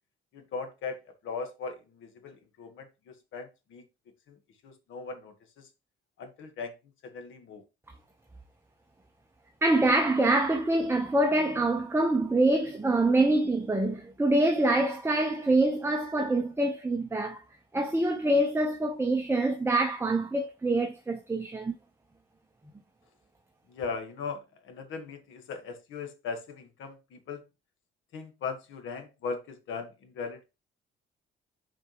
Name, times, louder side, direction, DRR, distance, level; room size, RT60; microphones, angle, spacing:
voice 1, 0.3-3.8 4.3-4.4 4.6-5.7 6.2-6.7 7.0-7.6 23.7-27.4 28.1-30.4, left 4 dB, 80° left, 1.6 m, -39 dB
voice 2, 9.6-17.4 17.7-21.7, right 2 dB, 10° right, 1.0 m, -25 dB
9.1 x 5.0 x 3.1 m
cardioid pair, 90°, 20 cm